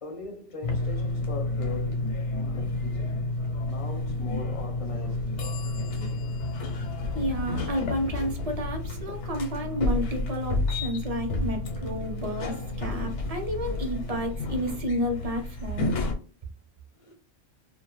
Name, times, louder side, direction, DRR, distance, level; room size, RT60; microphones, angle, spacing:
voice 1, 0.0-3.2 3.7-5.3 17.0-17.1, left 4 dB, 50° left, 0.4 m, -40 dB
sound 1, 0.6-16.1, left 2 dB, 85° left, 0.9 m, -30 dB
voice 2, 7.1-15.9, equal, 45° right, 0.5 m, -31 dB
2.2 x 2.1 x 3.0 m
omnidirectional pair, 1.1 m